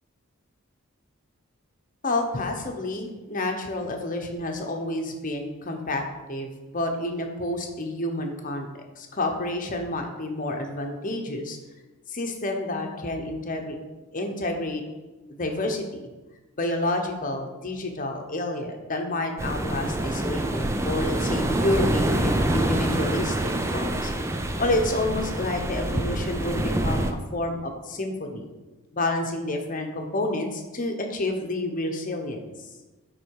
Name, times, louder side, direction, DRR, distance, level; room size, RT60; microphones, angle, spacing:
voice 1, 2.0-8.7 9.0-11.6 12.1-13.8 14.1-14.8 15.4-16.1 16.6-24.1 24.6-28.5 28.9-32.5, left 2 dB, 40° left, 4 dB, 1.1 m, -29 dB
sound 1, 19.4-27.1, right 1 dB, 15° right, 0.5 m, -26 dB
9.9 x 4.1 x 4.8 m, 1.1 s
head